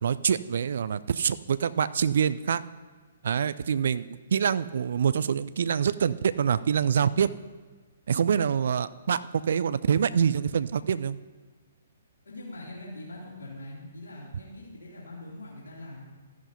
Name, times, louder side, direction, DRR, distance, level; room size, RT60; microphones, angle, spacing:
voice 1, 0.0-2.6 3.2-7.3 8.1-11.2, right 7 dB, 55° right, 16 dB, 0.4 m, -25 dB
voice 2, 12.3-16.0, left 1 dB, 70° left, -5 dB, 2.9 m, -42 dB
13.5 x 11.0 x 2.8 m, 1.4 s
figure-of-eight pair, 125°, 0 cm